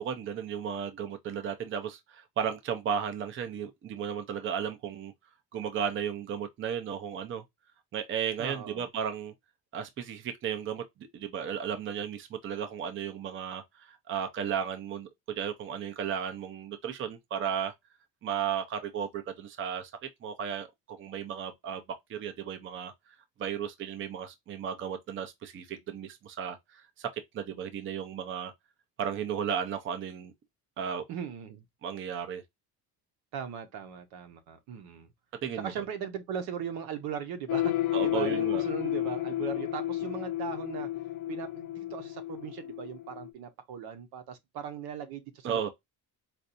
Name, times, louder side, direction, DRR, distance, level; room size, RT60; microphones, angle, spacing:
voice 1, 0.0-5.1 5.5-7.4 7.9-9.3 9.7-10.9 11.1-17.7 18.2-19.9 20.2-21.8 22.1-28.5 29.0-30.3 30.8-31.0 31.8-32.4 35.4-35.7 37.9-38.6 45.4-45.7, right 8 dB, 35° right, 0.6 m, -34 dB
voice 2, 8.4-8.9 31.1-31.6 33.3-35.1 35.6-40.9 41.3-45.7, right 8 dB, 80° right, 1.0 m, -39 dB
sound 1, 37.5-43.3, left 14 dB, 55° left, 0.6 m, -32 dB
4.4 x 2.6 x 2.5 m
cardioid pair, 160°, 36 cm